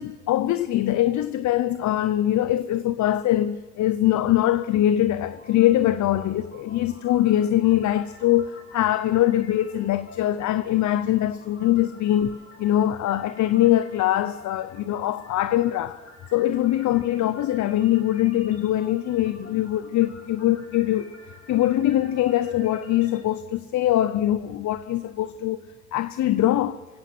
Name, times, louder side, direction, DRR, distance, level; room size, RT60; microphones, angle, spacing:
voice 1, 0.0-16.0 16.3-21.1 21.5-25.6 25.9-26.8, left 13 dB, 70° left, 0.7 m, -22 dB
sound 1, 5.2-23.2, left 2 dB, 50° left, 5.2 m, -49 dB
26.0 x 16.5 x 6.1 m
cardioid pair, 90°, 30 cm